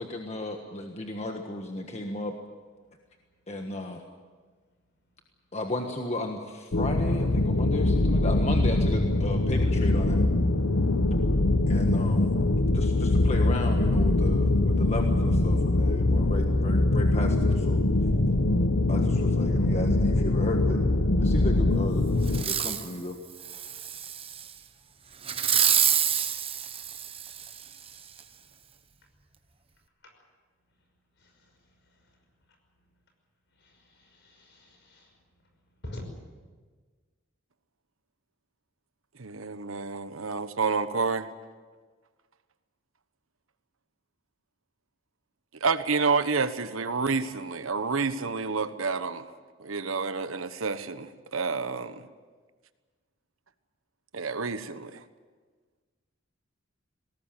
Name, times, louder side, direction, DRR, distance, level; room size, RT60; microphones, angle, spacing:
voice 1, 0.0-2.4 3.5-4.0 5.5-10.2 11.7-12.3 12.7-17.8 18.9-20.8 21.2-22.0 22.5-23.2, left 2 dB, 35° left, 3 dB, 1.5 m, -34 dB
sound 1, 6.7-22.4, left 2 dB, 85° left, 1.1 m, -23 dB
Fireworks, 22.3-22.9 23.4-24.5 25.2-27.6 28.2-28.3, right 9 dB, 30° right, 1.1 m, -27 dB
voice 2, 33.6-35.1 35.8-36.0, left 1 dB, 60° left, 4 dB, 5.7 m, -46 dB
voice 3, 39.2-41.3 45.5-49.3 49.6-52.1 54.1-55.0, right 4 dB, 80° right, 11 dB, 1.2 m, -29 dB
20.5 x 18.0 x 9.1 m, 1.5 s
head